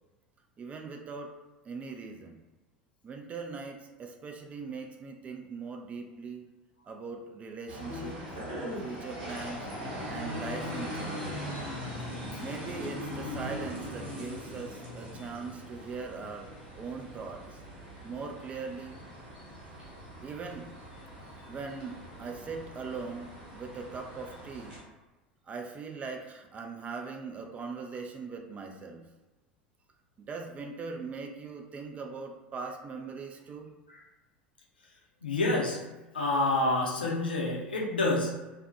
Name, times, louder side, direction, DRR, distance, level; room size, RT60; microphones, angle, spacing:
voice 1, 0.6-1.3 1.7-2.4 3.0-6.4 6.9-8.1 8.8-9.6 10.1-11.4 12.4-16.5 16.7-17.4 18.0-19.0 20.2-20.7 21.5-24.7 25.5-29.1 30.3-33.8, right 4 dB, 25° right, 3 dB, 0.3 m, -40 dB
sound 1, 7.7-24.8, equal, 65° right, 0.9 m, -40 dB
voice 2, 35.2-35.8 36.1-38.5, left 2 dB, 80° left, -2 dB, 0.5 m, -28 dB
2.4 x 2.1 x 2.5 m, 1.1 s
figure-of-eight pair, 75°, 5 cm